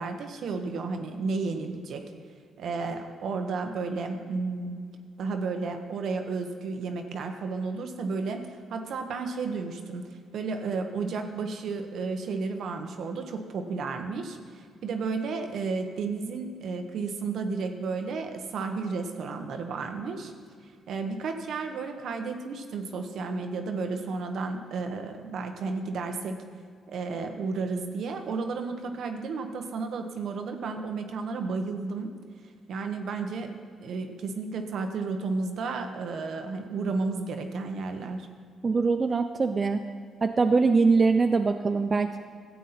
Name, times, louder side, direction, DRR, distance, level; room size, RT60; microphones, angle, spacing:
voice 1, 0.0-2.0 2.6-4.8 5.2-20.3 20.9-26.4 26.9-32.1 32.7-33.5 33.8-38.3, right 4 dB, 70° right, 5 dB, 1.1 m, -32 dB
voice 2, 38.6-39.8 40.2-42.2, right 4 dB, 35° right, 7 dB, 0.4 m, -23 dB
13.5 x 8.3 x 4.2 m, 2.1 s
cardioid pair, 90°, 0 cm